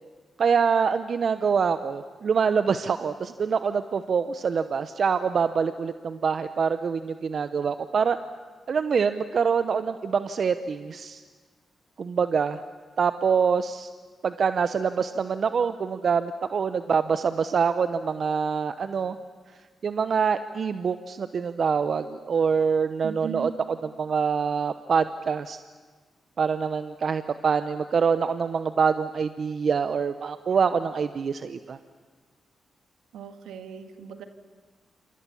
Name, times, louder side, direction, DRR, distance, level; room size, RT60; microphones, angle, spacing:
voice 1, 0.4-8.2 8.7-11.2 12.0-12.6 13.0-13.9 14.2-19.2 19.8-23.5 23.8-25.6 26.4-31.8, right 6 dB, 60° right, 11 dB, 0.9 m, -25 dB
voice 2, 23.0-23.5 33.1-34.3, right 8 dB, 80° right, 7 dB, 1.7 m, -38 dB
27.5 x 27.0 x 7.2 m, 1.5 s
supercardioid pair, 40°, 0 cm